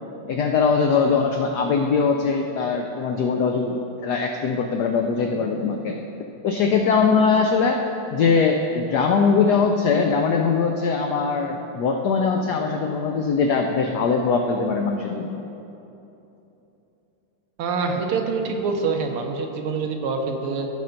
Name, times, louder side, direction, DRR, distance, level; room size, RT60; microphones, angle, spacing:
voice 1, 0.3-6.0 6.4-7.8 8.1-15.3, left 5 dB, 85° left, 3 dB, 0.9 m, -21 dB
voice 2, 17.6-20.7, right 4 dB, 80° right, 3 dB, 1.7 m, -25 dB
15.0 x 5.6 x 3.9 m, 2.9 s
omnidirectional pair, 2.4 m